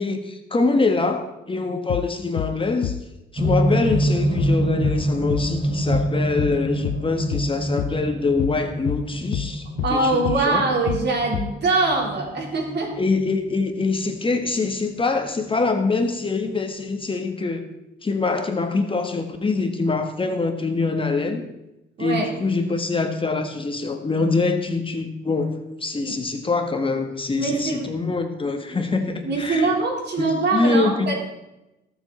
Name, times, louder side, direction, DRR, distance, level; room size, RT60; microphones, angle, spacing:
voice 1, 0.0-2.9 3.3-10.7 13.0-17.6 18.0-21.4 22.0-29.7 30.2-31.1, left 3 dB, 25° left, 5 dB, 1.5 m, -24 dB
sound 1, 1.9-2.1 2.4-2.6 2.8-3.0 3.4-3.6 3.9-4.1 4.4-4.6 4.8-5.0 5.3-5.5 5.9-6.1 6.4-6.6 6.8-7.0 7.3-7.5 7.8-8.0 8.4-8.6 8.9-9.1 9.3-9.5 9.8-10.0 10.2-10.4 10.9-11.1 11.3-11.5, left 14 dB, 75° left, 0.6 m, -28 dB
sound 2, 3.4-15.5 16.5-16.6, right 1 dB, 30° right, 1.9 m, -26 dB
voice 2, 9.8-12.9 22.0-22.3 26.0-26.2 27.4-27.9 28.7-28.8 29.2-31.1, right 3 dB, 60° right, 0 dB, 3.9 m, -23 dB
19.0 x 7.3 x 4.3 m, 0.94 s
cardioid pair, 90°, 20 cm